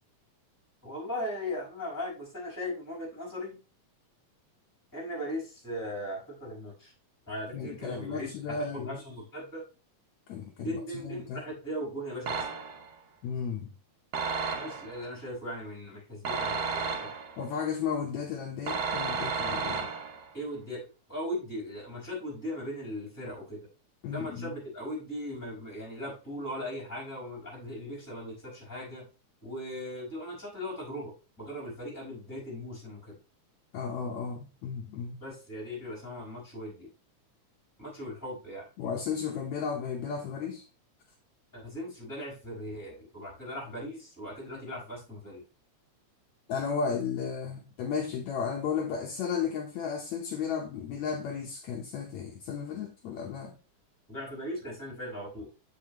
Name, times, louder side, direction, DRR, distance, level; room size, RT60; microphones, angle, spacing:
voice 1, 0.8-3.6 4.9-6.9 7.3-9.6 10.6-12.5 14.5-17.1 20.3-23.7 24.1-29.1 29.4-33.1 35.2-36.9 37.8-38.7 41.5-45.4 54.1-55.5, left 1 dB, 5° left, 4.6 m, -38 dB
voice 2, 7.5-9.0 10.3-11.5 13.2-13.7 17.4-19.9 24.0-24.6 33.7-35.2 38.8-40.7 46.5-53.5, left 6 dB, 70° left, 2.1 m, -34 dB
sound 1, 12.3-12.9 14.1-15.0 16.2-17.4 18.7-20.3, right 5 dB, 70° right, 1.1 m, -32 dB
8.4 x 5.6 x 3.0 m
omnidirectional pair, 3.5 m